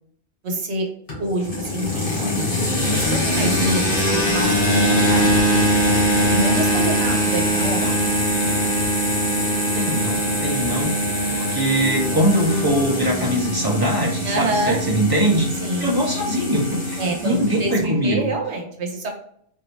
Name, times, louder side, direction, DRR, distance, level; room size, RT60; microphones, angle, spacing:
voice 1, 0.4-0.9 1.2-4.6 4.9-5.5 6.3-7.9 14.2-14.8 15.6-16.0 17.0-19.1, right 2 dB, 80° right, 2 dB, 1.2 m, -27 dB
sound 1, 1.1-17.8, equal, 55° left, 1.6 m, -22 dB
voice 2, 1.9-2.4 7.8-7.9 9.7-10.9 11.3-15.5 15.8-18.3, right 1 dB, 20° right, -2 dB, 1.0 m, -22 dB
4.3 x 3.1 x 2.7 m, 0.67 s
omnidirectional pair, 1.1 m